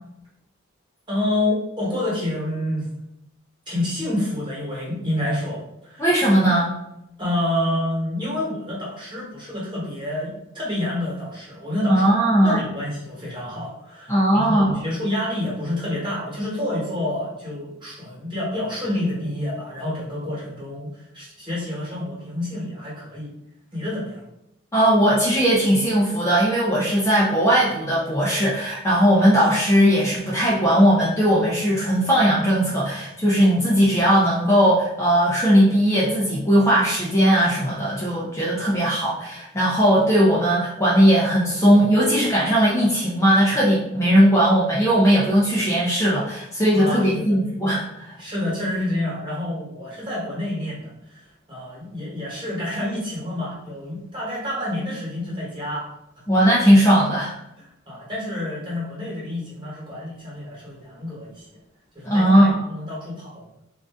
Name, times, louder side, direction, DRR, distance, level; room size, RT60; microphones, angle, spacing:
voice 1, 1.1-2.9 3.7-6.1 7.2-12.1 12.4-23.3 23.7-24.2 46.7-47.4 48.2-55.9 57.6-61.5 61.9-63.4, left 1 dB, 20° right, -6 dB, 1.5 m, -28 dB
voice 2, 6.0-6.7 11.9-12.6 14.1-14.7 24.7-48.1 56.3-57.3 62.0-62.6, equal, 15° left, -7 dB, 0.6 m, -18 dB
3.8 x 2.6 x 3.6 m, 0.85 s
head